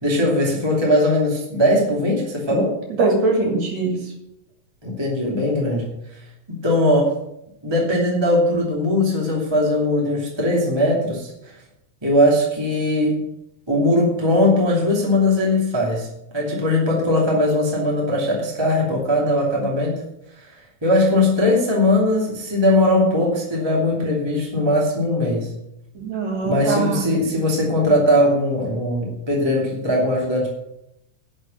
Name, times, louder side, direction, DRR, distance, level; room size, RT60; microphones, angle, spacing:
voice 1, 0.0-2.8 4.8-6.0 6.5-7.1 7.6-11.5 12.0-13.2 13.7-16.1 16.3-20.0 20.4-20.5 20.8-25.5 26.4-30.5, left 1 dB, 10° right, -3 dB, 2.3 m, -19 dB
voice 2, 2.9-4.0 26.0-27.1, right 3 dB, 55° right, 1 dB, 3.8 m, -22 dB
11.5 x 6.6 x 7.8 m, 0.83 s
omnidirectional pair, 3.8 m